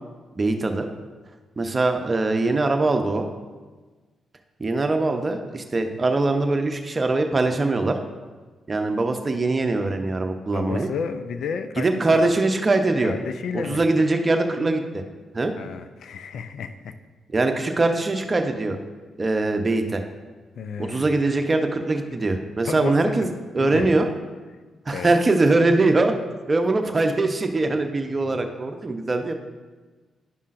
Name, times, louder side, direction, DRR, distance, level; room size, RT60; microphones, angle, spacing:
voice 1, 0.4-0.9 1.6-3.2 4.6-8.0 8.7-10.9 11.8-13.1 13.7-14.8 15.3-15.5 17.3-18.8 19.2-20.0 20.8-23.3 23.5-24.1 24.9-26.1 26.5-29.3, right 2 dB, 35° right, 5 dB, 0.8 m, -22 dB
voice 2, 10.5-12.3 12.8-13.8 15.5-17.0 20.5-21.2 22.1-22.2 22.6-23.3 23.6-24.0 24.9-25.2 28.3-28.4, left 6 dB, 70° left, 10 dB, 0.4 m, -32 dB
11.5 x 5.4 x 2.6 m, 1.3 s
hypercardioid pair, 45°, 0 cm